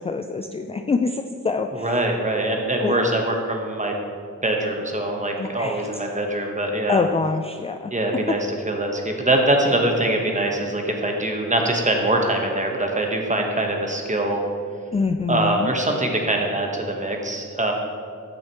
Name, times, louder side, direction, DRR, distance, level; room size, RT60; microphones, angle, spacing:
voice 1, 0.0-2.0 2.8-3.0 5.4-5.9 6.9-7.9 14.9-15.7, left 4 dB, 20° left, 6 dB, 0.3 m, -25 dB
voice 2, 1.7-4.0 4.4-7.0 7.9-14.4 15.3-17.7, right 1 dB, 20° right, 2 dB, 1.2 m, -23 dB
8.9 x 6.4 x 3.0 m, 2.2 s
cardioid pair, 55°, 35 cm